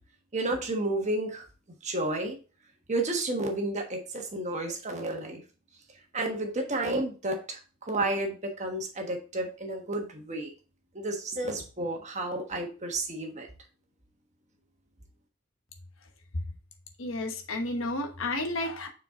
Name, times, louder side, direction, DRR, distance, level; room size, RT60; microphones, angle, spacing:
voice 1, 0.3-1.4 1.8-2.4 2.9-5.4 6.1-10.5 10.9-13.5, right 2 dB, 30° right, 3 dB, 1.3 m, -31 dB
voice 2, 17.0-18.9, left 2 dB, 65° left, 4 dB, 1.1 m, -31 dB
6.7 x 4.6 x 3.7 m, 0.35 s
head